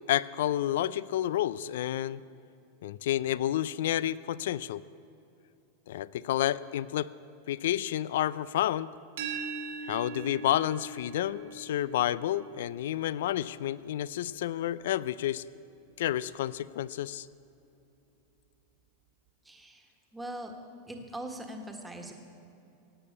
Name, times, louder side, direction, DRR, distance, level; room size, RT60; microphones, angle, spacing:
voice 1, 0.1-2.2 2.8-4.8 5.9-7.1 7.5-8.9 9.8-15.4 16.0-17.3, left 12 dB, 75° left, 19 dB, 0.4 m, -30 dB
sound 1, 9.2-14.9, right 5 dB, 80° right, 2.3 m, -42 dB
voice 2, 19.4-19.8 20.1-20.5 20.9-22.1, right 1 dB, 5° right, 3 dB, 1.5 m, -41 dB
17.0 x 8.7 x 8.6 m, 2.8 s
supercardioid pair, 155°, 0 cm